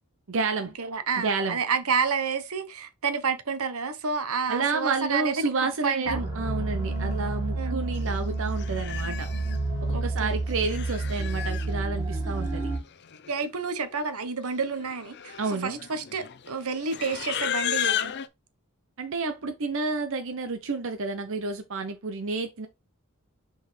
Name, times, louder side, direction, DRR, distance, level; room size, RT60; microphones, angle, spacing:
voice 1, 0.3-0.7 1.2-1.6 4.5-9.3 9.8-12.7 15.4-15.8 19.0-22.7, right 4 dB, 65° right, 0.8 m, -30 dB
voice 2, 0.8-5.5 5.8-6.2 7.5-7.8 9.9-10.4 13.3-18.1, right 5 dB, 85° right, 1.1 m, -29 dB
sound 1, 6.1-12.8, right 2 dB, 15° right, 3.2 m, -29 dB
Livestock farm animals working animals, 8.1-8.2 8.6-9.6 10.4-11.7 12.8-12.9 13.0-13.5 13.8-14.0 14.7-18.3, left 10 dB, 50° left, 0.6 m, -33 dB
6.0 x 5.1 x 3.3 m
head